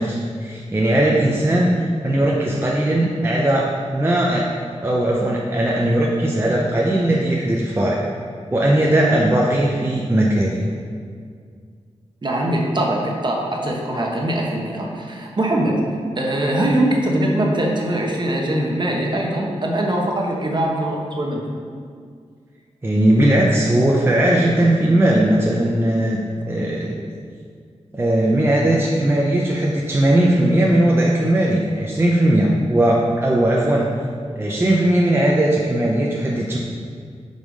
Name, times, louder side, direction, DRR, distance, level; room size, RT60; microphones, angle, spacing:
voice 1, 0.0-3.7 3.9-4.5 4.8-8.0 8.5-10.6 22.8-26.2 26.5-27.1 27.9-33.9 34.4-36.6, right 1 dB, 20° right, -3 dB, 0.7 m, -18 dB
voice 2, 12.2-15.8 16.2-21.4, right 1 dB, 40° right, -1 dB, 1.1 m, -22 dB
5.4 x 4.9 x 5.2 m, 2.1 s
wide cardioid pair, 95°, 12 cm